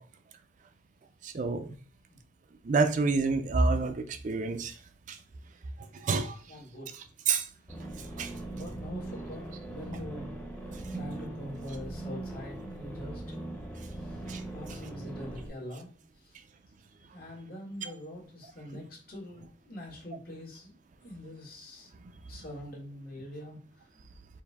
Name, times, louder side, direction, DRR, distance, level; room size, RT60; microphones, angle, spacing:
voice 1, 1.2-1.7 2.7-4.7 6.0-6.3 7.3-7.4 8.2-8.3 14.3-14.4, right 4 dB, 45° right, 8 dB, 0.4 m, -27 dB
voice 2, 6.5-6.9 8.5-10.3 10.9-13.7 14.0-14.2 14.5-15.9 16.2-16.3 17.1-21.9 22.3-23.6, left 1 dB, 55° left, -3 dB, 1.7 m, -44 dB
sound 1, 7.7-15.5, right 2 dB, 10° left, 0.8 m, -40 dB
4.6 x 2.7 x 3.4 m, 0.40 s
head